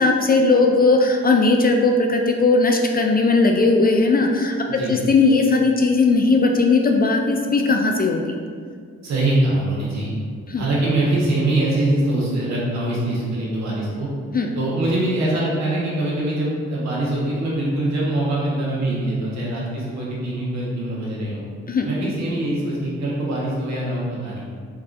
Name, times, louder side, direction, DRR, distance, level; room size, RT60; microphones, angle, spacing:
voice 1, 0.0-8.4 10.5-10.6 14.3-14.5 21.7-21.9, left 3 dB, 30° left, 2 dB, 0.4 m, -18 dB
voice 2, 9.0-10.1 10.6-14.1 14.5-21.4 21.8-24.5, right 1 dB, 55° right, -5 dB, 1.4 m, -23 dB
3.9 x 3.6 x 2.6 m, 2.1 s
hypercardioid pair, 40°, 32 cm